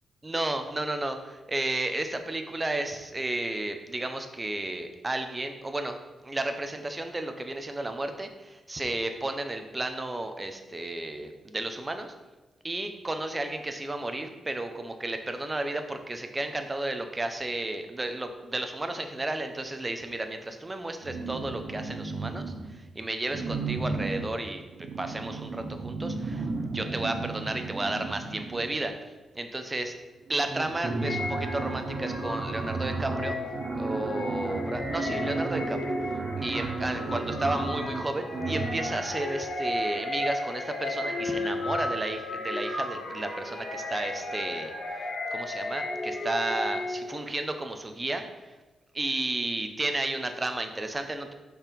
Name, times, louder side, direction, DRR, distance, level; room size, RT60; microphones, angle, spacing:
voice 1, 0.2-6.0 6.2-12.1 12.6-24.6 25.0-28.9 29.3-29.9 30.3-33.4 33.7-36.1 36.4-48.6 48.9-51.3, right 2 dB, 20° right, 6 dB, 0.7 m, -33 dB
sound 1, 21.0-22.8 23.3-29.0 29.9-30.0 30.3-39.1, right 3 dB, 55° right, 0.8 m, -34 dB
sound 2, 31.0-47.2, left 2 dB, 50° left, 1.6 m, -34 dB
5.5 x 4.6 x 5.2 m, 1.2 s
cardioid pair, 95°, 0 cm